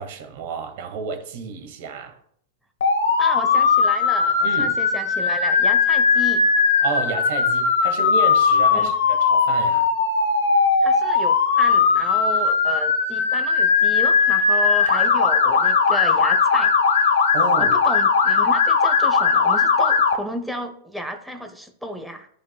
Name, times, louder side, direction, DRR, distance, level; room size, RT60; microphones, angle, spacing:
voice 1, 0.0-2.2 4.4-4.8 6.8-9.9 17.3-17.8, right 6 dB, 65° right, 6 dB, 1.5 m, -31 dB
Motor vehicle (road) / Siren, 2.8-20.1, left 5 dB, 80° left, 1.1 m, -18 dB
voice 2, 3.2-6.4 8.7-8.9 10.8-17.1 17.6-22.3, equal, 5° right, 5 dB, 0.9 m, -32 dB
11.5 x 5.2 x 2.2 m, 0.65 s
hypercardioid pair, 110°, 0 cm